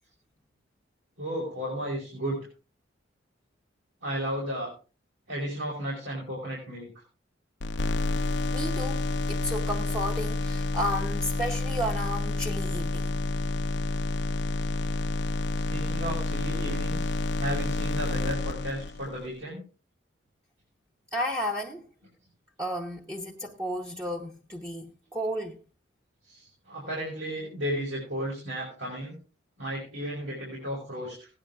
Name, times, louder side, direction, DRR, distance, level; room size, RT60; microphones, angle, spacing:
voice 1, 1.2-2.5 4.0-4.7 5.3-6.9 15.7-17.1 17.4-19.6 26.2-29.2 29.6-31.3, equal, 75° right, 5.4 m, -34 dB
sound 1, 7.6-19.3, left 2 dB, 60° left, 0.6 m, -29 dB
voice 2, 8.5-13.2 21.1-21.9 22.6-25.6, equal, 15° right, 0.9 m, -33 dB
16.5 x 10.0 x 3.5 m
head